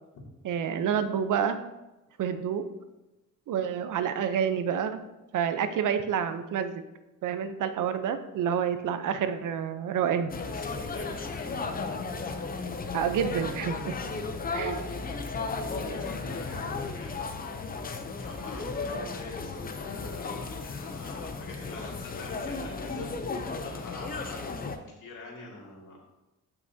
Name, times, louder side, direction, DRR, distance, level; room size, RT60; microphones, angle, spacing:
voice 1, 0.4-1.6 2.2-2.6 3.5-5.0 5.3-6.8 7.2-10.3 12.9-13.9 14.5-14.8, right 8 dB, 75° right, 10 dB, 0.7 m, -28 dB
voice 2, 10.1-11.6 14.0-14.3 14.7-14.8 15.6-23.1 23.6-26.0, left 3 dB, 80° left, -2 dB, 2.4 m, -45 dB
sound 1, 10.3-24.8, left 4 dB, 30° left, 0.6 m, -35 dB
14.0 x 5.9 x 2.7 m, 1.0 s
wide cardioid pair, 155°, 31 cm